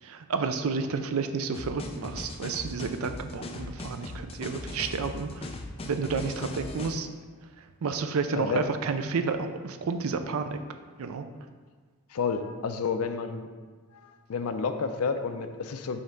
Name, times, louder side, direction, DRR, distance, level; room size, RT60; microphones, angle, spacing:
voice 1, 0.0-5.5 5.8-7.1 7.6-10.6 11.0-11.2, right 4 dB, 75° right, 8 dB, 0.4 m, -31 dB
sound 1, 1.5-7.0, left 2 dB, 25° left, 0.4 m, -39 dB
voice 2, 12.1-13.5 13.9-16.0, left 5 dB, 80° left, 8 dB, 0.5 m, -30 dB
5.6 x 3.2 x 5.2 m, 1.5 s
head